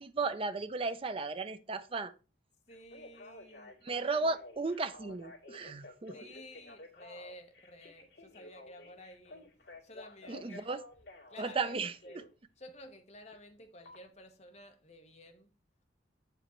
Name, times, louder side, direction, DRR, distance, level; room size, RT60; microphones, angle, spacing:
voice 1, 0.0-2.1 3.8-6.2 10.3-10.8 11.4-11.9, right 3 dB, 30° right, 0.4 m, -35 dB
Telephone, 2.7-12.3 13.9-14.0, left 2 dB, 60° left, 2.3 m, -52 dB
voice 2, 2.7-3.9 6.1-9.5 9.8-10.7 11.3-12.2 12.6-15.5, left 1 dB, 35° left, 1.2 m, -53 dB
8.4 x 5.1 x 4.3 m
head